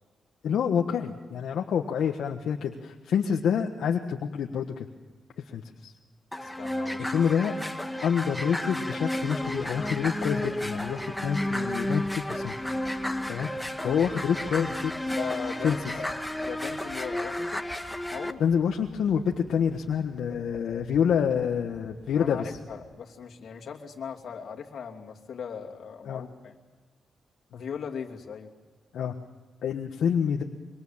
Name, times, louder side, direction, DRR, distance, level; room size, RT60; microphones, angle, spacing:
voice 1, 0.4-4.8 5.5-5.9 7.0-7.5 8.0-12.5 13.3-13.5 13.8-14.9 15.6-15.8 18.4-22.5 26.0-26.2 27.5-27.6 28.9-29.1 29.6-30.4, left 7 dB, 85° left, 3 dB, 1.4 m, -27 dB
sound 1, 6.3-18.3, left 1 dB, 5° left, 1.4 m, -32 dB
voice 2, 6.4-7.2 13.8-14.0 15.2-17.6 18.1-18.4 22.2-26.6 27.5-28.5, left 7 dB, 70° left, 1 dB, 2.8 m, -39 dB
sound 2, 9.1-22.8, right 2 dB, 70° right, 4.7 m, -53 dB
26.0 x 24.0 x 7.3 m, 1.4 s
cardioid pair, 105°, 0 cm